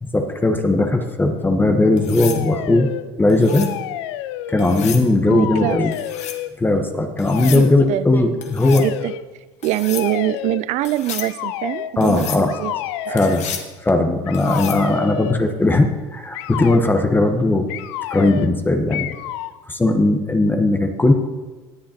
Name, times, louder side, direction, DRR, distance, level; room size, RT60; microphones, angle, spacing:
voice 1, 0.0-2.9 3.2-3.7 4.5-5.9 6.6-8.8 12.0-12.5 13.1-13.5 13.8-17.7 18.1-19.1 19.7-21.1, left 2 dB, 15° left, 5 dB, 1.1 m, -18 dB
sound 1, 2.0-2.4 3.3-3.7 4.6-5.1 5.9-6.4 7.2-7.7 8.4-8.9 9.6-10.1 10.8-11.3 12.0-12.4 13.2-13.7 14.3-14.8 16.8-17.0, left 8 dB, 55° left, 1.3 m, -32 dB
sound 2, 2.2-3.1 3.4-4.9 5.2-6.5 7.2-7.7 8.6-9.2 9.9-10.7 11.2-11.9 12.5-13.4 14.3-15.5 16.3-16.8 17.7-18.6 18.9-19.6, left 13 dB, 80° left, 0.5 m, -30 dB
voice 2, 5.3-5.9 7.4-8.2 8.7-9.1 9.6-12.7 13.1-13.2, right 15 dB, 55° right, 16 dB, 0.4 m, -24 dB
19.5 x 7.5 x 2.9 m, 1.2 s
supercardioid pair, 90°, 14 cm